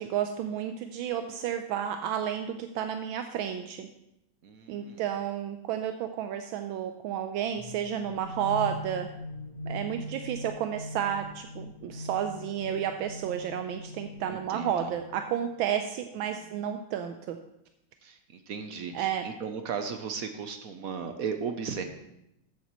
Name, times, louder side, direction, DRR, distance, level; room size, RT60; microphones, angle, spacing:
voice 1, 0.0-3.9 4.7-9.1 9.6-17.4 18.9-19.3, right 9 dB, 80° right, 6 dB, 1.4 m, -31 dB
voice 2, 4.4-5.0 14.3-14.9 16.3-16.5 18.0-21.8, right 6 dB, 60° right, 7 dB, 0.9 m, -36 dB
sound 1, 7.6-15.3, equal, 50° left, 2.4 m, -41 dB
14.0 x 8.2 x 3.1 m, 0.84 s
omnidirectional pair, 2.2 m